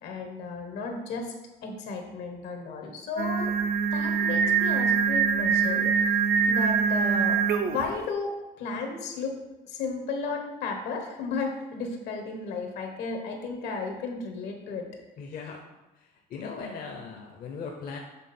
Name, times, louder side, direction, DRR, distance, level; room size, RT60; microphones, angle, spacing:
voice 1, 0.0-1.3 1.6-3.5 3.9-5.9 6.5-9.3 9.7-14.8, left 4 dB, 80° left, 3 dB, 1.2 m, -34 dB
Singing, 3.2-7.9, right 6 dB, 65° right, 0.5 m, -24 dB
voice 2, 15.2-15.6 15.9-18.0, left 5 dB, 55° left, 1 dB, 0.7 m, -39 dB
7.3 x 3.4 x 4.2 m, 1.0 s
cardioid pair, 110°, 17 cm